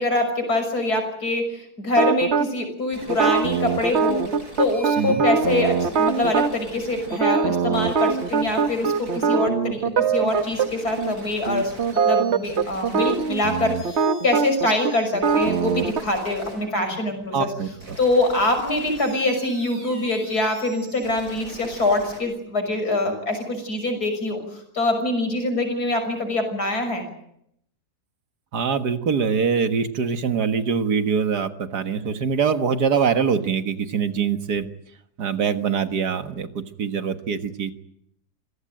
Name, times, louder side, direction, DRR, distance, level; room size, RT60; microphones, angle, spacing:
voice 1, 0.0-4.2 4.6-17.5 18.0-24.4 24.7-27.1, left 2 dB, 75° left, 6 dB, 6.7 m, -24 dB
sound 1, 2.0-2.5 3.1-6.5 7.1-10.7 11.0-11.1 11.5-16.0, right 6 dB, 45° right, 1.4 m, -22 dB
sound 2, 2.9-22.2, right 1 dB, 70° right, 6.9 m, -42 dB
voice 2, 17.3-18.0 28.5-34.7 35.2-37.7, right 6 dB, 90° right, 9 dB, 2.2 m, -23 dB
27.0 x 17.5 x 9.1 m, 0.74 s
omnidirectional pair, 1.7 m